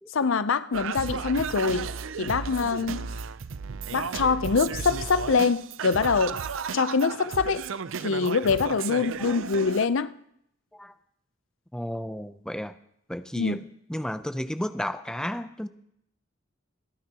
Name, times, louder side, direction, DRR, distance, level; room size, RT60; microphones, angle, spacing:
voice 1, 0.1-1.9 2.2-3.1 3.9-6.4 6.7-7.6 8.0-10.2 13.4-13.6, left 5 dB, 70° left, 0.6 m, -24 dB
Singing, 0.7-9.9, right 6 dB, 75° right, 0.5 m, -34 dB
voice 2, 11.7-12.7 13.1-15.7, equal, 5° left, 0.5 m, -33 dB
28.0 x 9.9 x 2.9 m
head